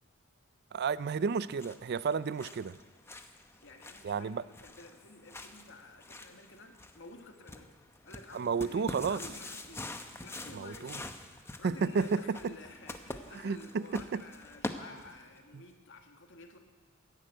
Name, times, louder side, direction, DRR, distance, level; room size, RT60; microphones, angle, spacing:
voice 1, 0.7-2.8 4.0-4.4 8.3-9.2 10.5-11.0 11.6-12.5 13.4-14.2, right 5 dB, 50° right, 17 dB, 0.4 m, -32 dB
sound 1, 1.2-15.4, left 2 dB, 10° left, 0.8 m, -46 dB
voice 2, 3.6-7.8 8.0-9.9 10.2-11.2 11.6-16.6, left 2 dB, 60° left, 4 dB, 1.7 m, -51 dB
14.5 x 10.5 x 9.0 m, 1.4 s
head